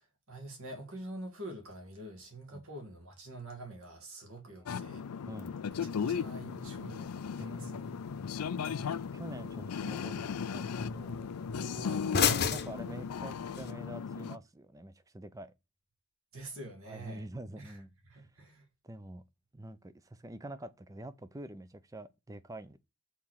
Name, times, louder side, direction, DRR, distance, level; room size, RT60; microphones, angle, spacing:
voice 1, 0.0-5.0 5.8-7.9 11.7-12.1 16.3-17.2 17.6-18.7, right 1 dB, 65° right, 2.6 m, -46 dB
voice 2, 4.5-5.6 7.4-8.0 9.1-11.3 12.5-15.5 16.9-18.3 18.8-19.2 19.5-22.8, right 1 dB, 15° right, 0.5 m, -46 dB
sound 1, 4.7-14.4, left 6 dB, 85° left, 0.5 m, -37 dB
sound 2, 5.7-13.7, left 6 dB, 45° left, 0.8 m, -37 dB
5.8 x 4.3 x 6.3 m
head